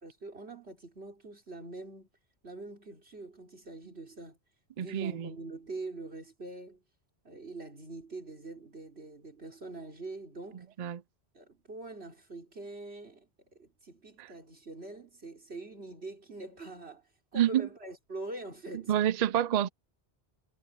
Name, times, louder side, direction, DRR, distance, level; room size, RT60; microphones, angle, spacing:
voice 1, 0.0-2.1 2.4-4.4 4.8-6.8 7.2-10.7 11.3-17.0 17.3-18.9, right 2 dB, 75° right, 4.2 m, -44 dB
voice 2, 4.8-5.3 10.8-11.0 14.2-14.3 17.4-17.7 18.9-19.7, right 11 dB, 55° right, 0.5 m, -27 dB
omnidirectional pair, 1.1 m